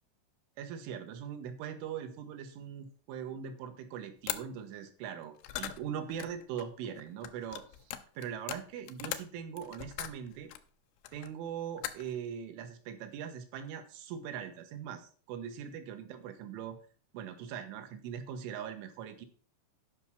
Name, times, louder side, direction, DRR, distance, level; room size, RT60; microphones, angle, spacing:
voice 1, 0.6-7.9 8.2-10.5 11.1-16.8 17.1-19.3, right 8 dB, 85° right, 7 dB, 3.7 m, -41 dB
sound 1, 4.3-4.4 5.3-10.6 11.1-11.5 11.8-12.2, left 13 dB, 85° left, 3.2 m, -40 dB
10.5 x 5.7 x 6.0 m, 0.41 s
omnidirectional pair, 5.4 m